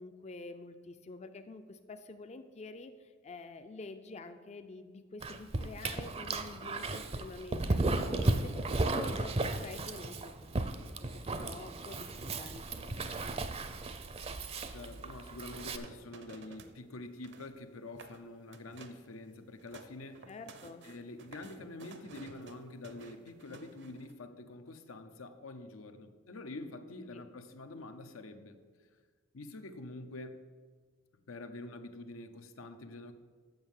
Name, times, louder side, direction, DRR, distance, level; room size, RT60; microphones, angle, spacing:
voice 1, 0.0-13.2 20.3-20.9 27.1-27.2, left 3 dB, 35° left, 8 dB, 0.4 m, -48 dB
Dog, 5.2-15.8, right 2 dB, 30° right, 0.5 m, -35 dB
voice 2, 14.7-20.2 20.8-28.6 29.3-30.4 31.3-33.1, left 2 dB, 90° left, 8 dB, 0.8 m, -46 dB
sound 1, 14.9-16.8 17.1-17.6 17.9-18.2 18.5-19.1 19.4-24.1, right 3 dB, 60° right, 0.7 m, -53 dB
7.8 x 6.3 x 7.2 m, 1.6 s
head